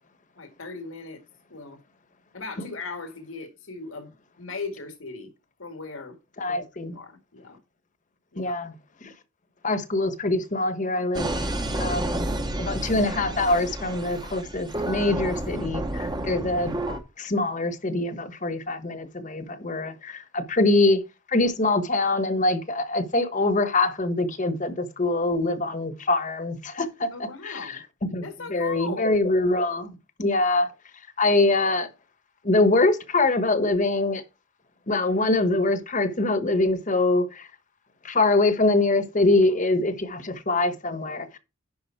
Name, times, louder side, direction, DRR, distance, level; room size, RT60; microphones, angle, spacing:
voice 1, 0.4-1.2 1.5-1.8 2.3-5.3 5.6-6.2 6.5-7.6 8.3-8.6 27.1-27.8 28.2-29.1, left 4 dB, 80° left, 2.0 m, -38 dB
voice 2, 6.4-7.0 8.4-8.7 9.0-9.1 9.6-11.3 11.8-12.3 12.6-16.8 17.2-21.0 21.3-27.1 27.4-28.2 28.5-29.9 30.2-30.7 31.2-31.9 32.4-34.2 34.9-37.5 38.0-41.4, left 2 dB, 40° left, 1.2 m, -24 dB
sound 1, 11.1-17.0, right 1 dB, 20° right, 1.0 m, -30 dB
11.0 x 5.2 x 4.5 m
head